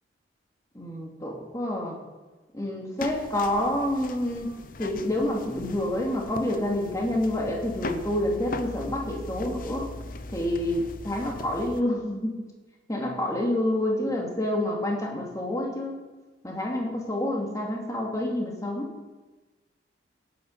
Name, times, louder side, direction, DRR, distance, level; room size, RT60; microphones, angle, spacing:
voice 1, 0.7-2.0 2.5-4.5 4.8-9.9 10.3-12.4 12.9-16.0 16.4-18.9, left 1 dB, 20° left, -1 dB, 2.6 m, -28 dB
sound 1, 3.0-11.8, left 2 dB, 45° left, 0.8 m, -39 dB
17.0 x 9.2 x 5.6 m, 1.2 s
head